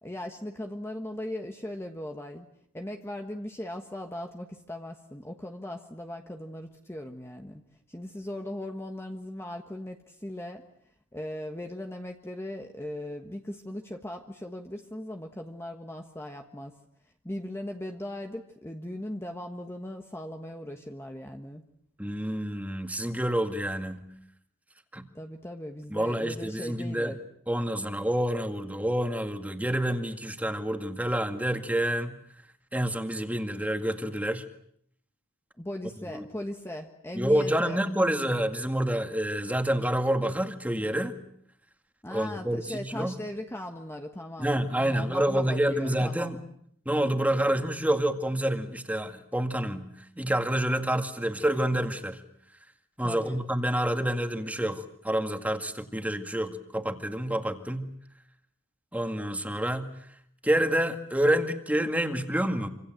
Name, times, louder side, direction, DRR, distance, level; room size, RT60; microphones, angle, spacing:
voice 1, 0.0-2.5 2.7-7.6 7.9-10.6 11.1-16.8 17.2-21.6 25.1-27.2 35.6-37.8 42.0-44.5 44.8-46.3 53.0-53.4, left 1 dB, 10° left, 3 dB, 1.4 m, -38 dB
voice 2, 22.0-24.0 24.9-25.1 25.9-27.1 27.5-32.1 32.7-34.4 36.1-36.3 37.1-41.2 42.1-43.1 44.4-46.4 46.9-52.2 53.0-57.9 58.9-59.9 60.4-62.7, right 1 dB, 5° right, 6 dB, 2.0 m, -28 dB
26.5 x 26.0 x 7.8 m, 0.69 s
head